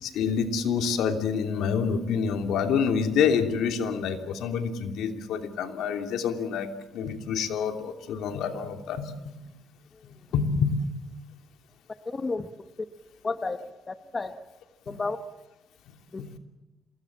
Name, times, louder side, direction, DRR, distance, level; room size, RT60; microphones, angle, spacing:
voice 1, 0.0-9.1 10.3-10.8 16.2-16.3, left 6 dB, 85° left, 7 dB, 2.9 m, -27 dB
voice 2, 12.0-12.5 12.8-12.9 13.2-14.4 14.9-15.2 16.1-16.2, left 3 dB, 30° left, 10 dB, 1.4 m, -32 dB
27.0 x 21.0 x 7.4 m, 1.1 s
cardioid pair, 90°, 0 cm